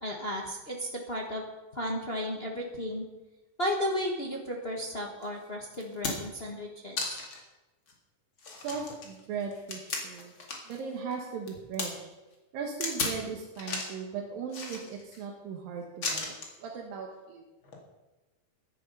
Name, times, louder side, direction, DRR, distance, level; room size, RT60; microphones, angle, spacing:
voice 1, 0.0-1.4 1.7-3.0 3.6-7.2, equal, 55° left, -1 dB, 0.6 m, -34 dB
sound 1, 5.2-5.3 5.7-6.4 7.0-7.4 7.9-8.0 8.4-10.8 11.1-11.9 12.8-13.2 13.6-14.0 14.5-15.2 16.0-16.6 17.6-17.8, left 3 dB, 40° left, 2.6 m, -35 dB
voice 2, 8.5-10.3 10.7-12.1 12.5-17.4, right 6 dB, 90° right, 0 dB, 3.2 m, -38 dB
14.5 x 10.5 x 5.5 m, 1.1 s
omnidirectional pair, 3.9 m